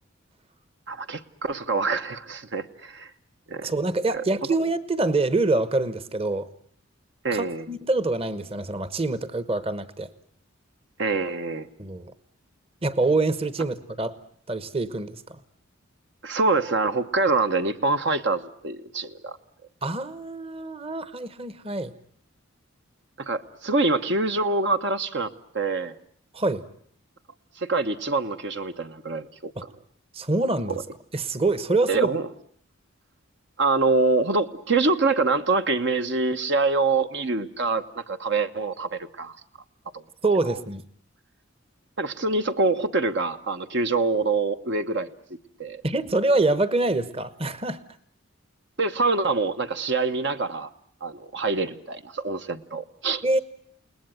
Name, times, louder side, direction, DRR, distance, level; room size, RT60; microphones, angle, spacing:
voice 1, 0.9-3.1 3.5-3.7 4.1-4.2 7.2-7.7 11.0-11.7 16.2-19.4 23.2-25.3 25.5-25.9 27.6-29.5 31.9-32.2 33.6-39.4 39.9-40.0 40.5-40.6 42.0-45.1 45.6-45.8 48.8-50.7 51.0-53.2, right 3 dB, 55° right, 8 dB, 1.1 m, -25 dB
voice 2, 3.6-6.5 7.3-10.1 11.8-12.1 12.8-14.2 14.5-15.2 19.8-21.9 26.3-26.6 29.6-29.7 30.1-30.8 31.1-32.1 40.2-40.8 45.8-47.8 53.2-53.4, right 2 dB, 30° right, 14 dB, 1.1 m, -25 dB
30.0 x 19.5 x 9.1 m, 0.62 s
head